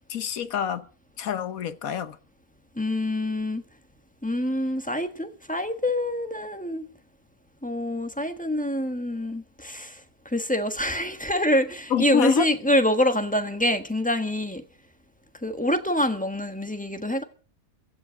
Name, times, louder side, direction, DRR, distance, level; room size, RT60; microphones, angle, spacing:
voice 1, 0.1-0.9 1.2-2.2 11.9-12.5, left 8 dB, 70° left, 1.4 m, -26 dB
voice 2, 2.8-3.6 4.2-6.9 7.6-10.0 10.3-14.6 15.4-17.2, left 1 dB, 5° left, 1.3 m, -26 dB
16.0 x 7.9 x 8.7 m
omnidirectional pair, 1.6 m